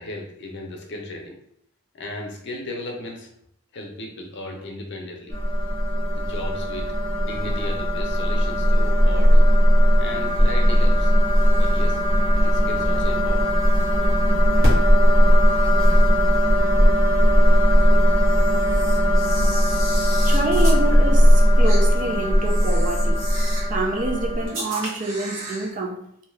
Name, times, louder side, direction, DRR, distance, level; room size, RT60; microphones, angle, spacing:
voice 1, 0.0-1.4 1.9-3.3 3.7-5.3 6.1-6.9 7.2-9.4 9.9-11.1 11.6-12.0 12.3-13.5, left 2 dB, 60° left, 1 dB, 0.6 m, -35 dB
sound 1, 5.3-24.5, equal, 70° right, 1.2 m, -18 dB
Camera, 18.2-20.8 21.6-21.8 22.4-23.7 24.5-25.7, right 2 dB, 90° right, 1.4 m, -35 dB
voice 2, 20.2-23.2 23.7-26.0, right 2 dB, 40° right, 0 dB, 0.4 m, -27 dB
2.7 x 2.3 x 3.1 m, 0.70 s
head